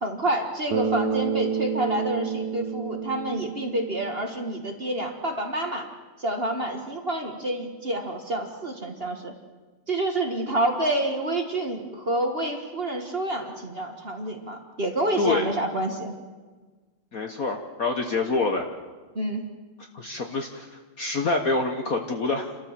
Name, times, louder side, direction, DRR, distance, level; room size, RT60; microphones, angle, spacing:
voice 1, 0.0-5.9 6.2-9.3 9.9-16.2 19.1-19.5, right 1 dB, 30° right, 3 dB, 1.5 m, -28 dB
Bass guitar, 0.7-4.9, right 6 dB, 60° right, 1.2 m, -30 dB
voice 2, 17.1-18.7 19.9-22.6, left 3 dB, 50° left, 4 dB, 1.3 m, -26 dB
29.5 x 13.5 x 7.3 m, 1.4 s
omnidirectional pair, 2.4 m